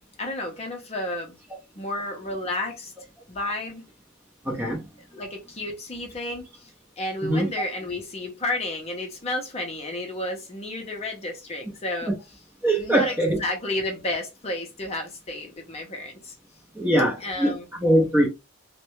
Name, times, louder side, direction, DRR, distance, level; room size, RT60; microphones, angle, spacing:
voice 1, 0.2-1.4 1.8-2.9 3.3-3.8 5.1-6.7 7.0-12.1 12.8-13.1 13.4-16.3 17.2-17.6, left 2 dB, 30° left, 0.6 m, -31 dB
voice 2, 4.4-4.8 7.2-7.5 12.6-13.4 16.7-18.3, right 1 dB, 10° right, 0.7 m, -22 dB
3.2 x 2.1 x 3.0 m
head